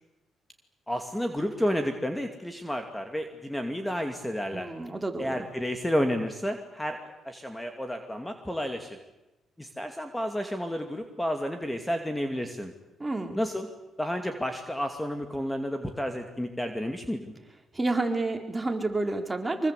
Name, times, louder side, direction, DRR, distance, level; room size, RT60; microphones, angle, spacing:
voice 1, 0.9-4.7 5.2-9.0 9.6-12.7 13.3-13.7 14.0-17.3, equal, 5° left, 6 dB, 2.6 m, -31 dB
voice 2, 4.5-5.5 13.0-13.4 17.7-19.7, right 2 dB, 20° right, 4 dB, 4.3 m, -29 dB
25.0 x 23.5 x 8.4 m, 1.0 s
cardioid pair, 90°, 0 cm